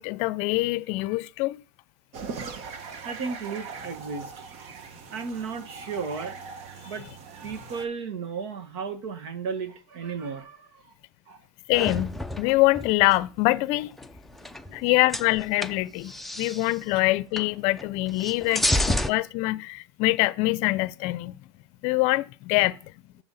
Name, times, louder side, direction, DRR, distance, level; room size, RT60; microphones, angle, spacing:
voice 1, 0.0-1.6 11.7-13.9 14.7-21.4 21.8-22.8, left 20 dB, 50° left, 0.5 m, -24 dB
sound 1, 2.1-7.9, right 5 dB, 45° right, 1.2 m, -40 dB
voice 2, 3.0-4.3 5.0-6.4 6.8-10.9 11.3-11.4 14.5-15.0 18.5-18.8, right 5 dB, 70° right, 1.6 m, -35 dB
sound 2, 11.7-13.2 14.0-14.8 15.1-16.7 17.4-17.5 17.8-19.1, left 1 dB, ahead, 0.4 m, -30 dB
7.2 x 6.9 x 4.0 m
supercardioid pair, 130°, 14 cm